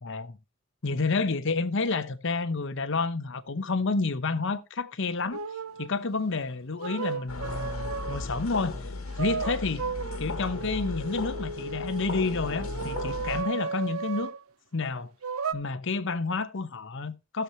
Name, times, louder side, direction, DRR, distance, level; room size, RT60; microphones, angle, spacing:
voice 1, 0.0-0.4 0.8-5.4 5.8-8.9 9.2-9.9 10.2-14.3 14.7-15.1 15.5-17.4, left 3 dB, 65° left, 0.9 m, -30 dB
sound 1, 5.3-5.9 6.8-8.4 9.2-14.4 15.2-15.5, right 5 dB, 90° right, 0.6 m, -34 dB
sound 2, 7.3-13.4, left 3 dB, 85° left, 1.7 m, -36 dB
14.5 x 7.2 x 2.9 m
head